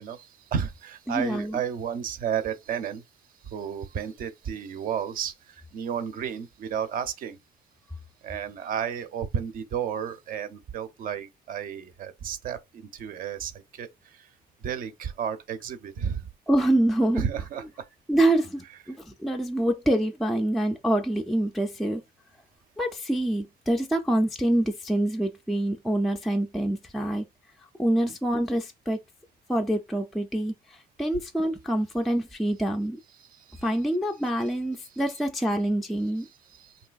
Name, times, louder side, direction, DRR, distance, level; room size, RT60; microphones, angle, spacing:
voice 1, 0.0-3.0 3.4-7.4 8.2-14.3 14.6-16.3 17.2-17.6 33.2-33.6 34.8-35.0 36.2-36.8, right 8 dB, 55° right, 0.5 m, -32 dB
voice 2, 1.1-1.6 16.5-17.3 18.1-22.0 22.8-27.3 27.8-29.0 29.5-30.5 31.0-33.0 33.6-36.3, right 1 dB, ahead, 0.3 m, -26 dB
3.2 x 2.7 x 2.3 m
cardioid pair, 110°, 17 cm